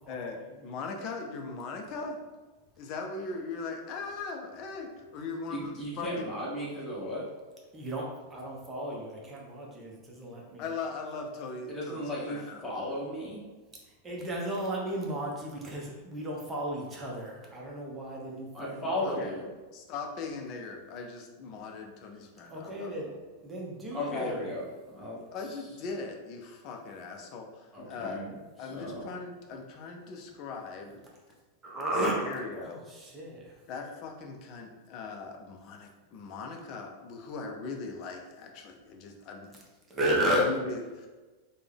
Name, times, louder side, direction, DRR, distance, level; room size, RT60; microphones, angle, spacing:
voice 1, 0.1-2.2 2.8-6.3 10.6-12.6 19.0-19.4 19.7-23.0 24.1-24.4 25.3-28.2 28.6-31.0 32.1-32.8 33.7-39.5 40.2-41.1, left 4 dB, 40° left, 3 dB, 0.5 m, -39 dB
voice 2, 5.5-7.3 11.7-13.4 18.5-19.5 23.9-24.6 24.9-25.2 27.7-28.3 28.7-29.1, left 1 dB, 10° left, -6 dB, 1.1 m, -35 dB
voice 3, 7.7-8.0 8.3-10.6 14.0-18.5 18.7-19.1 22.5-23.1 23.4-24.4 31.6-33.5 39.9-40.5, right 1 dB, 20° right, -3 dB, 0.7 m, -33 dB
3.3 x 2.1 x 3.4 m, 1.3 s
figure-of-eight pair, 90°, 0 cm